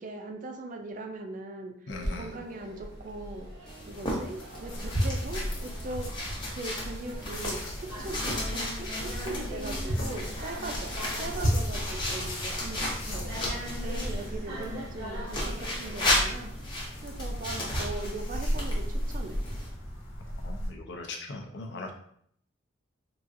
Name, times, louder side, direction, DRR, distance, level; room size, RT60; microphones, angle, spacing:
voice 1, 0.0-1.7 2.1-3.5 3.9-6.1 6.5-13.4 13.8-16.5 17.0-19.4, right 2 dB, 40° right, 4 dB, 0.4 m, -40 dB
voice 2, 1.9-2.4 20.4-21.9, left 3 dB, 60° left, 3 dB, 0.5 m, -39 dB
sound 1, 1.9-16.1, equal, 75° right, 1.0 m, -42 dB
sound 2, 3.7-14.3 15.3-19.7, left 1 dB, 25° left, 0.7 m, -35 dB
sound 3, 4.7-20.7, equal, 85° left, 0.9 m, -35 dB
3.8 x 2.4 x 2.6 m, 0.67 s
head